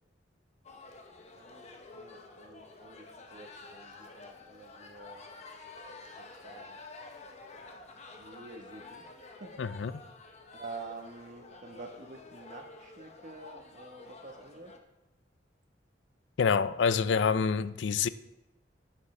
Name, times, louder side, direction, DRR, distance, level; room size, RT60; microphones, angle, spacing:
sound 1, 0.6-14.8, left 3 dB, 40° left, 0.9 m, -50 dB
voice 1, 1.9-5.3 6.2-6.8 8.2-9.0 9.4-9.6 10.5-14.7, right 3 dB, 45° right, 1.2 m, -48 dB
voice 2, 9.6-9.9 16.4-18.1, left 6 dB, 75° left, 0.4 m, -27 dB
11.0 x 9.5 x 3.3 m
head